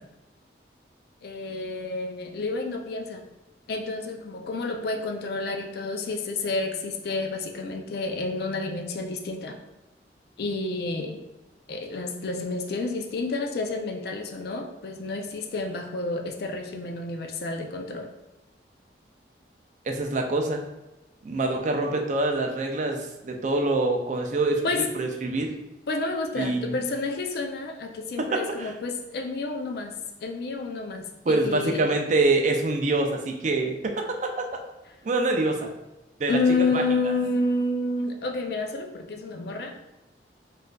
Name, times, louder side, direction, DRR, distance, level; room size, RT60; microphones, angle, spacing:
voice 1, 1.2-3.2 3.7-9.6 10.4-11.2 11.7-18.1 24.6-24.9 25.9-31.9 36.3-39.9, left 3 dB, 60° left, 5 dB, 0.4 m, -30 dB
voice 2, 19.8-20.6 21.2-25.5 26.4-26.8 28.3-28.7 31.3-34.2 35.0-35.7 36.2-36.4 36.7-36.8, right 2 dB, 45° right, 3 dB, 0.4 m, -25 dB
4.2 x 2.5 x 2.3 m, 0.97 s
head